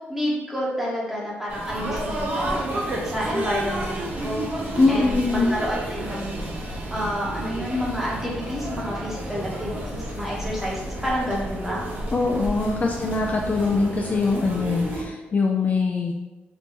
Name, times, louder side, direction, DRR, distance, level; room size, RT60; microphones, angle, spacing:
voice 1, 0.1-4.4 4.9-6.4 6.9-11.8 12.6-12.9, equal, 5° right, -5 dB, 1.0 m, -29 dB
sound 1, 1.5-15.0, right 1 dB, 40° right, 0.9 m, -31 dB
voice 2, 4.8-5.5 12.1-16.1, left 3 dB, 40° left, 0 dB, 0.3 m, -22 dB
2.9 x 2.7 x 3.5 m, 1.1 s
cardioid pair, 105°, 4 cm